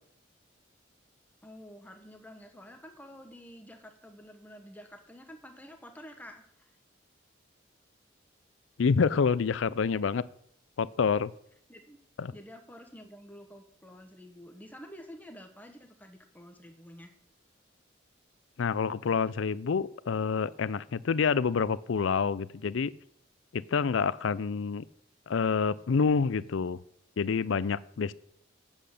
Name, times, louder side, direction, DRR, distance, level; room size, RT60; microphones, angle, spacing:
voice 1, 1.4-6.7 11.7-12.0 12.3-17.1, equal, 10° left, 5 dB, 1.2 m, -49 dB
voice 2, 8.8-10.2 10.8-11.3 12.2-12.3 18.6-22.9 23.5-24.8 25.3-26.8 27.2-28.1, left 5 dB, 90° left, 19 dB, 0.5 m, -27 dB
8.8 x 7.7 x 6.5 m, 0.69 s
head